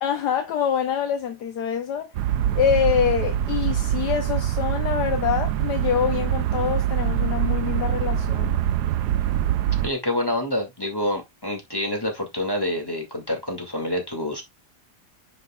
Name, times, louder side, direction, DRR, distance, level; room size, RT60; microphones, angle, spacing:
voice 1, 0.0-2.1 2.5-8.6, left 8 dB, 75° left, 1.4 m, -25 dB
sound 1, 2.1-9.9, right 11 dB, 75° right, 1.2 m, -24 dB
voice 2, 9.8-14.4, left 1 dB, 15° left, 2.2 m, -27 dB
9.6 x 5.4 x 2.4 m
omnidirectional pair, 1.8 m